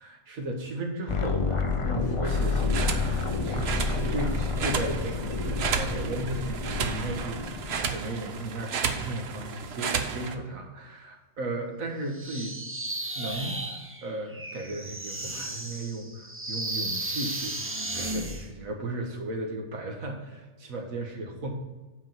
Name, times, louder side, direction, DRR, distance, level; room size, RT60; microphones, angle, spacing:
voice 1, 0.0-12.6 13.2-21.5, right 2 dB, 85° right, 2 dB, 1.7 m, -35 dB
sound 1, 1.1-7.9, left 4 dB, 40° left, 0.5 m, -29 dB
sound 2, 2.3-10.4, right 6 dB, 60° right, 0.9 m, -33 dB
sound 3, 12.1-18.5, right 1 dB, 15° right, 0.4 m, -34 dB
8.4 x 4.8 x 5.8 m, 1.2 s
omnidirectional pair, 1.4 m